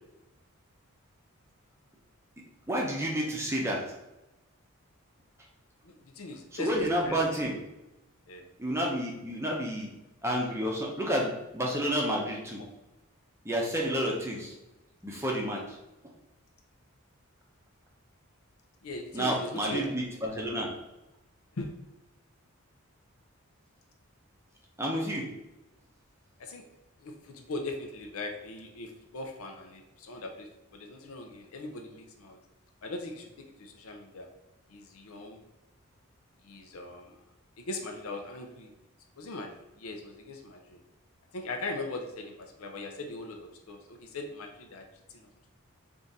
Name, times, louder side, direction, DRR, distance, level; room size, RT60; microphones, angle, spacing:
voice 1, 2.7-3.8 6.5-7.5 8.6-9.9 10.2-12.6 13.4-14.5 15.0-15.8 19.1-20.7 24.8-25.3, equal, 10° right, -2 dB, 0.7 m, -30 dB
voice 2, 5.8-7.2 8.3-8.5 18.8-19.9 21.5-21.7 26.4-26.6 27.0-32.4 32.8-34.3 34.7-35.4 36.4-37.2 37.6-38.7 39.2-40.8 41.3-44.8 45.1-45.5, left 2 dB, 80° left, 3 dB, 0.6 m, -40 dB
3.6 x 2.5 x 4.0 m, 0.98 s
head